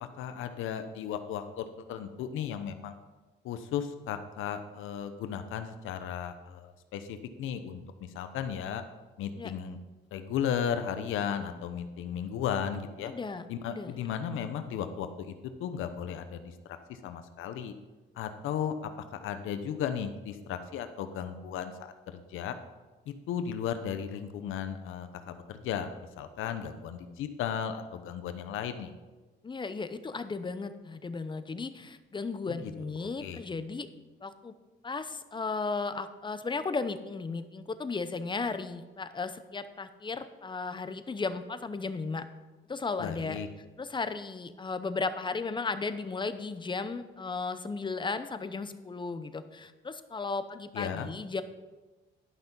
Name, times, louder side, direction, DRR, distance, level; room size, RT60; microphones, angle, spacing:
voice 1, 0.2-2.9 3.4-8.8 9.2-9.8 10.1-13.1 13.5-15.3 15.6-16.5 16.9-17.7 18.2-22.5 23.1-28.9 32.5-32.6 33.2-33.4 43.0-43.5 50.7-51.1, left 8 dB, 85° left, 9 dB, 0.8 m, -35 dB
voice 2, 13.0-14.0 29.4-33.9 34.2-34.5 34.8-42.2 42.7-43.4 43.8-51.4, left 4 dB, 25° left, 11 dB, 0.7 m, -35 dB
11.5 x 5.9 x 5.4 m, 1.2 s
cardioid pair, 90°, 20 cm